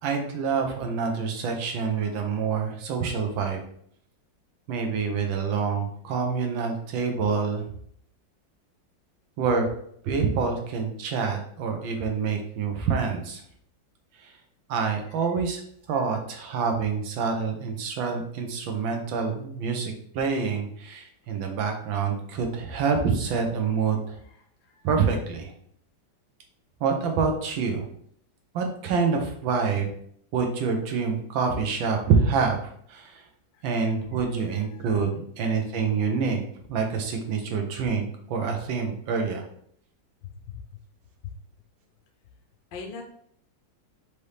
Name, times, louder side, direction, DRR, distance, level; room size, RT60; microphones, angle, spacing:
voice 1, 0.0-3.6 4.7-7.6 9.4-9.7 10.0-13.4 14.1-14.4 14.7-15.6 15.9-24.2 24.8-25.5 26.8-27.9 28.5-29.9 30.3-32.6 32.9-33.3 33.6-36.4 36.7-39.4, right 5 dB, 85° right, 3 dB, 1.6 m, -26 dB
voice 2, 24.2-24.8 33.5-34.2 34.7-34.9 40.5-40.6 41.2-41.3 42.7-43.0, left 6 dB, 75° left, 2 dB, 1.3 m, -43 dB
5.1 x 2.9 x 3.3 m, 0.64 s
omnidirectional pair, 2.1 m